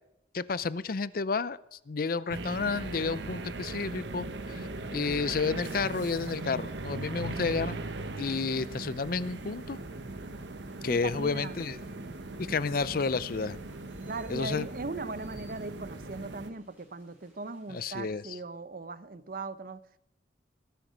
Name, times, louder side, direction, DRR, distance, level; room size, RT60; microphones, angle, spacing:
voice 1, 0.3-7.8 8.2-9.8 10.8-11.8 12.4-13.6 14.3-14.7 17.7-18.4, left 4 dB, 50° left, 0.5 m, -31 dB
sound 1, 2.3-16.5, right 2 dB, 75° right, 1.0 m, -39 dB
sound 2, 2.5-18.1, equal, 10° right, 6.7 m, -65 dB
voice 2, 10.8-11.6 14.0-19.8, right 3 dB, 50° right, 0.7 m, -39 dB
19.5 x 10.5 x 5.1 m
head